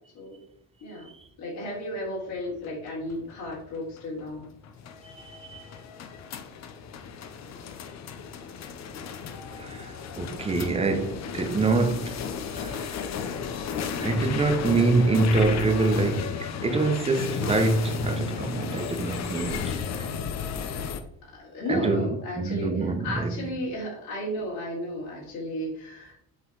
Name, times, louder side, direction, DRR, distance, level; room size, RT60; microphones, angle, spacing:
voice 1, 1.4-4.4 9.4-9.5 21.2-26.1, left 1 dB, 80° left, 3.4 m, -33 dB
sound 1, 2.4-21.0, left 6 dB, 50° left, 0.8 m, -34 dB
voice 2, 5.0-5.6 9.6-12.2 12.6-12.9 14.0-19.8 21.7-22.0 22.4-23.3, right 3 dB, 15° right, 0.8 m, -25 dB
8.4 x 4.0 x 4.7 m
cardioid pair, 160°, 35 cm